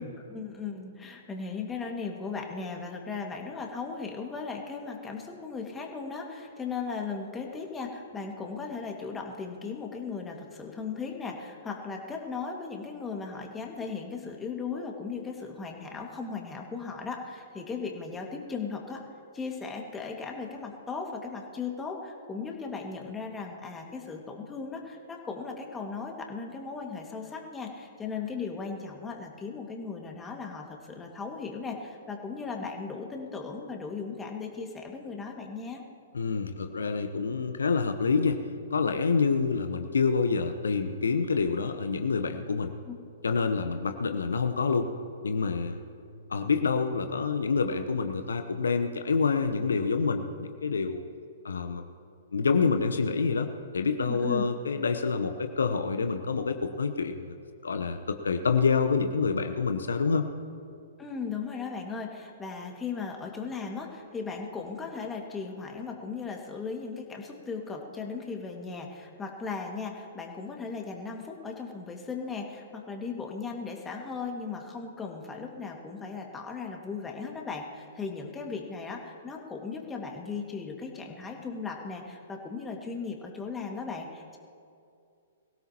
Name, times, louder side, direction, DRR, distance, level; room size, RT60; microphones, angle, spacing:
voice 1, 0.3-19.0 19.3-35.8 42.9-43.0 54.0-54.5 61.0-84.4, left 5 dB, 15° left, 1 dB, 2.0 m, -37 dB
voice 2, 36.1-38.4 38.7-42.7 43.2-44.9 45.2-45.8 46.3-51.0 51.4-51.9 52.3-53.5 53.7-57.3 57.6-60.3, left 5 dB, 75° left, 7 dB, 0.9 m, -27 dB
23.0 x 16.5 x 3.0 m, 2.4 s
figure-of-eight pair, 115°, 0 cm